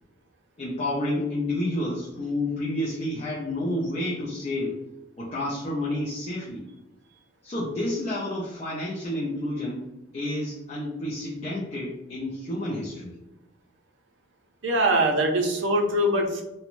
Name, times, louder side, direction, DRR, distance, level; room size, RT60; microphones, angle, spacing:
voice 1, 0.6-4.8 5.2-6.6 7.4-9.8 10.1-13.1, left 1 dB, 30° left, -5 dB, 0.4 m, -30 dB
voice 2, 14.6-16.4, right 1 dB, 65° right, 1 dB, 0.6 m, -22 dB
3.0 x 2.1 x 2.5 m, 0.92 s
head